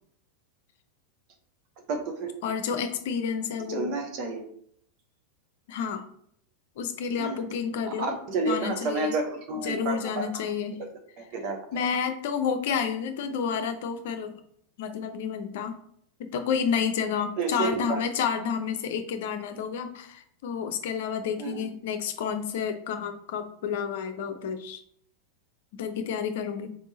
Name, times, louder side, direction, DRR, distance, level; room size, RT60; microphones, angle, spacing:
voice 1, 1.9-2.3 3.7-4.4 7.2-7.4 7.9-10.4 10.8-10.9 11.2-11.6 17.4-18.0 21.4-21.7, right 3 dB, 40° right, 3 dB, 1.0 m, -30 dB
voice 2, 2.4-3.9 5.7-6.0 6.8-8.1 8.5-9.2 9.6-10.8 11.7-14.3 14.8-15.8 16.3-24.8 25.8-26.7, left 7 dB, 55° left, 7 dB, 0.6 m, -30 dB
4.6 x 3.6 x 2.8 m, 0.66 s
figure-of-eight pair, 90°, 0 cm